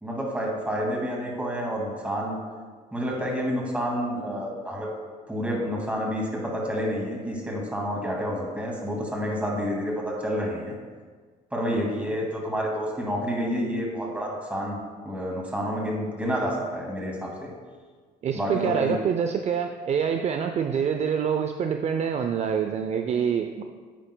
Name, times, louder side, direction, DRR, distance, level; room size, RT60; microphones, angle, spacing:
voice 1, 0.0-2.4 2.9-4.9 5.3-10.7 11.5-14.8 15.0-17.5 18.3-18.9, equal, 10° right, -2 dB, 2.1 m, -29 dB
voice 2, 18.2-23.6, right 7 dB, 40° right, 6 dB, 0.4 m, -26 dB
9.9 x 8.8 x 2.2 m, 1.5 s
cardioid pair, 110°, 17 cm